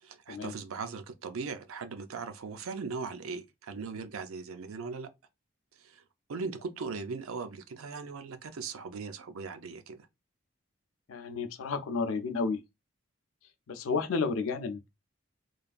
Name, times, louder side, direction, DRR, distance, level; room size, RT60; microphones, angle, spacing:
voice 1, 0.0-5.1 5.8-6.0 6.3-10.1, right 4 dB, 85° right, 0.5 m, -39 dB
voice 2, 11.1-12.6 13.7-14.9, left 4 dB, 85° left, 0.5 m, -31 dB
3.2 x 2.5 x 2.3 m
head